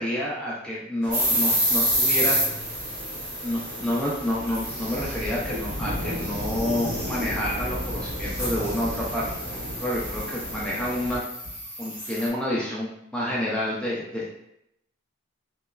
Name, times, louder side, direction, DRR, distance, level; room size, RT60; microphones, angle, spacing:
voice 1, 0.0-2.4 3.4-9.3 9.5-11.2 11.8-14.4, left 1 dB, 5° left, -6 dB, 0.3 m, -29 dB
sound 1, 1.0-11.2, equal, 60° right, 1.5 m, -35 dB
sound 2, 1.1-12.3, equal, 25° right, 1.2 m, -29 dB
3.1 x 2.2 x 2.2 m, 0.79 s
head